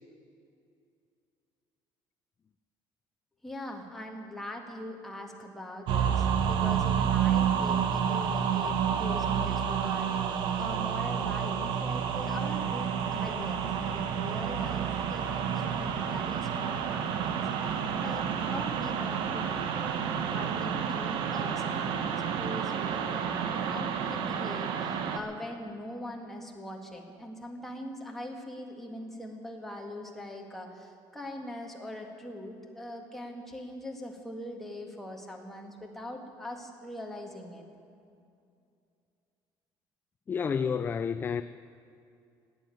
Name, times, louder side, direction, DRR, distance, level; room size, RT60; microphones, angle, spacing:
voice 1, 3.4-17.3 18.0-19.9 20.3-37.7, left 1 dB, 5° left, 0 dB, 1.8 m, -42 dB
depths-of-hell, 5.9-25.2, right 8 dB, 70° right, 1.2 m, -30 dB
voice 2, 40.3-41.4, left 6 dB, 25° left, 12 dB, 0.3 m, -29 dB
17.0 x 9.2 x 9.3 m, 2.5 s
cardioid pair, 150°, 9 cm